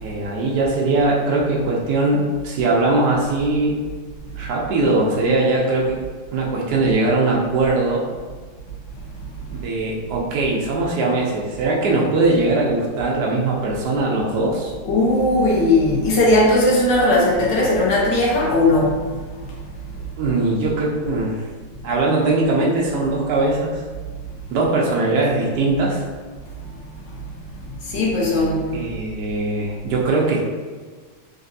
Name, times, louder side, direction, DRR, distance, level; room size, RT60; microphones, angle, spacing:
voice 1, 0.0-3.7 4.4-6.0 6.3-8.0 9.5-14.7 20.2-21.4 21.8-23.8 24.5-26.0 28.7-30.4, right 2 dB, 80° right, -3 dB, 0.8 m, -20 dB
voice 2, 14.8-19.0 27.9-28.7, left 1 dB, 65° left, -4 dB, 1.4 m, -17 dB
4.1 x 2.6 x 2.6 m, 1.5 s
omnidirectional pair, 2.3 m